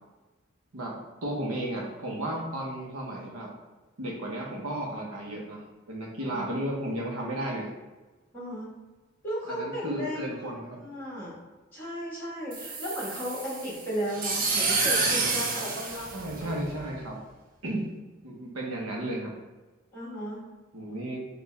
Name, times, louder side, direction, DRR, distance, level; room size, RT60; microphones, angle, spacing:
voice 1, 1.2-3.5 4.0-5.6 5.9-7.7 9.5-10.8 16.1-17.2 17.6-17.8 18.2-19.3 20.7-21.2, right 1 dB, 85° right, -2 dB, 0.9 m, -33 dB
voice 2, 8.3-8.7 9.2-11.4 11.7-16.6 19.9-20.4, equal, 10° left, -9 dB, 1.4 m, -35 dB
sound 1, 12.5-16.9, right 3 dB, 40° right, 0.6 m, -29 dB
4.5 x 2.4 x 3.2 m, 1.2 s
head